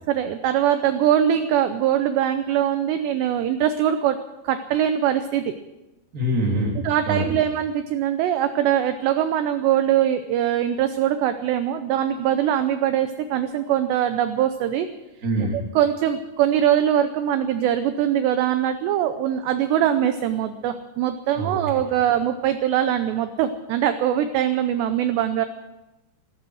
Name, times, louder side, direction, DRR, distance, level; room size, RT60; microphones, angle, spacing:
voice 1, 0.1-4.2 4.4-5.4 6.8-14.9 15.8-25.5, right 10 dB, 85° right, 9 dB, 2.5 m, -22 dB
voice 2, 6.1-7.4 15.2-15.6 21.3-21.8, right 1 dB, 25° right, 0 dB, 2.3 m, -25 dB
15.5 x 14.5 x 6.3 m, 1.0 s
omnidirectional pair, 5.8 m